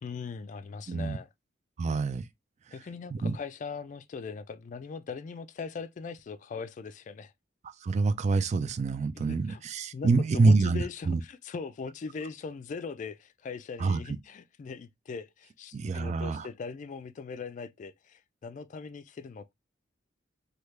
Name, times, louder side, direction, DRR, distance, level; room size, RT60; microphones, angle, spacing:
voice 1, 0.0-1.3 2.7-7.3 9.2-9.6 9.9-19.5, left 5 dB, 40° left, 0.3 m, -40 dB
voice 2, 0.9-1.2 1.8-2.2 3.1-3.4 7.8-11.2 13.8-14.0 15.7-16.5, right 3 dB, 40° right, 0.3 m, -26 dB
3.3 x 2.3 x 3.1 m
head